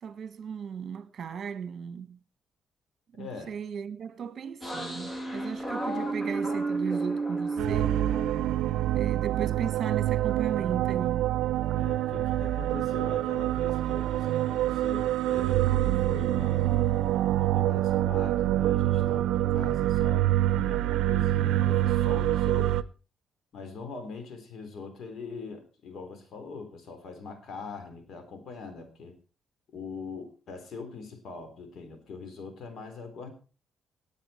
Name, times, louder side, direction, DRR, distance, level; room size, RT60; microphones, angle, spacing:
voice 1, 0.0-2.2 3.2-8.0 8.9-11.3, right 7 dB, 50° right, 1.4 m, -36 dB
voice 2, 3.2-3.6 11.7-16.8 17.3-22.8 23.5-29.2 29.7-33.3, left 4 dB, 60° left, 4.0 m, -42 dB
sound 1, 4.6-10.6 11.0-15.2 15.5-18.1, right 3 dB, 20° left, 2.3 m, -36 dB
sound 2, 7.6-22.8, right 14 dB, 85° right, 0.5 m, -26 dB
19.0 x 8.9 x 4.5 m
cardioid pair, 90°, 0 cm